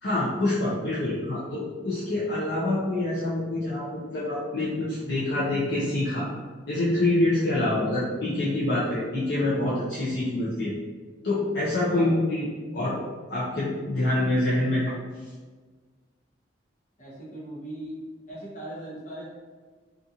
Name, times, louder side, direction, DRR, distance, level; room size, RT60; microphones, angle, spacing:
voice 1, 0.0-6.3 6.7-10.7 11.2-12.5 12.7-13.0 13.3-14.9, left 1 dB, 55° left, -9 dB, 0.5 m, -26 dB
voice 2, 11.9-12.2 17.0-18.0 18.3-19.3, right 1 dB, 40° left, -7 dB, 0.9 m, -39 dB
2.8 x 2.5 x 2.4 m, 1.4 s
head